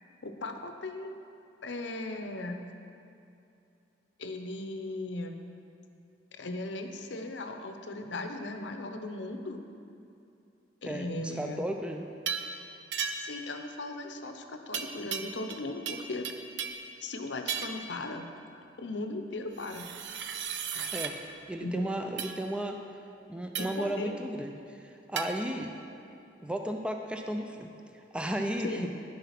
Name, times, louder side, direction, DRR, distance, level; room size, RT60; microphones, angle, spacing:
voice 1, 0.2-1.1 1.6-2.6 4.2-5.4 6.4-9.6 10.8-11.6 13.1-16.3 17.0-18.3 18.8-19.9 21.6-22.1 23.6-24.1 28.6-28.9, left 2 dB, 75° left, 6 dB, 0.7 m, -37 dB
voice 2, 10.9-12.1 20.9-21.2 21.5-22.8 23.3-25.8 26.4-28.9, right 1 dB, 5° right, 4 dB, 0.4 m, -35 dB
sound 1, 12.3-12.5 12.9-13.4 14.7-15.6 15.9-16.9 17.5-17.9 19.6-21.1 22.2-22.4 23.5-23.9 25.2-25.3, right 7 dB, 70° right, 0.7 m, -35 dB
10.0 x 7.1 x 5.9 m, 2.7 s
head